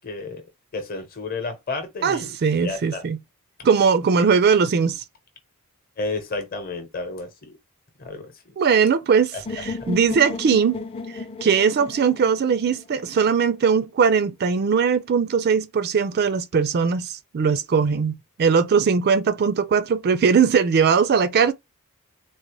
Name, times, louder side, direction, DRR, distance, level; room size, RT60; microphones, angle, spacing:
voice 1, 0.0-0.4 0.7-3.0 6.0-7.6 8.0-8.6 9.3-9.6, left 3 dB, 40° left, 0.9 m, -32 dB
voice 2, 2.0-3.2 3.6-5.0 8.6-10.8 11.4-21.5, right 6 dB, 45° right, 0.4 m, -20 dB
sound 1, 9.5-13.4, left 3 dB, 25° left, 0.5 m, -34 dB
3.9 x 2.1 x 2.9 m
head